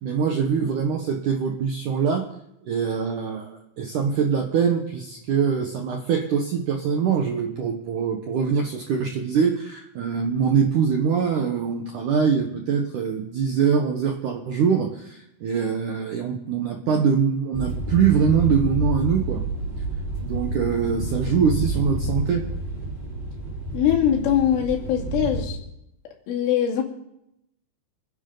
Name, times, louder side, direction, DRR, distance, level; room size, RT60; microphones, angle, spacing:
voice 1, 0.0-2.3 2.6-19.4 20.2-22.5, right 6 dB, 85° right, 3 dB, 1.7 m, -23 dB
sound 1, 17.5-25.4, right 2 dB, 15° right, 3.7 m, -29 dB
voice 2, 23.7-25.6 26.3-26.8, left 10 dB, 80° left, 0 dB, 4.9 m, -22 dB
28.5 x 10.5 x 3.9 m, 0.82 s
omnidirectional pair, 5.6 m